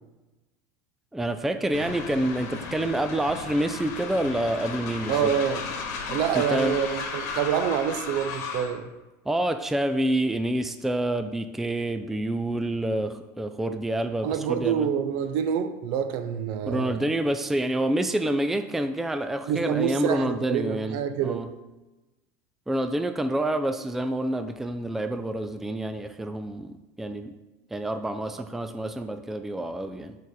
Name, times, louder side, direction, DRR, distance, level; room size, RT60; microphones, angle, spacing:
voice 1, 1.1-5.3 6.1-6.8 9.3-14.9 16.7-21.5 22.7-27.3 27.7-30.2, right 1 dB, 5° right, 9 dB, 0.3 m, -28 dB
Train, 1.7-8.8, left 5 dB, 75° left, 1.2 m, -35 dB
voice 2, 5.1-5.6 6.1-8.9 14.2-17.1 19.5-21.4, right 8 dB, 65° right, 10 dB, 0.6 m, -27 dB
6.5 x 4.1 x 4.8 m, 1.1 s
supercardioid pair, 120°, 9 cm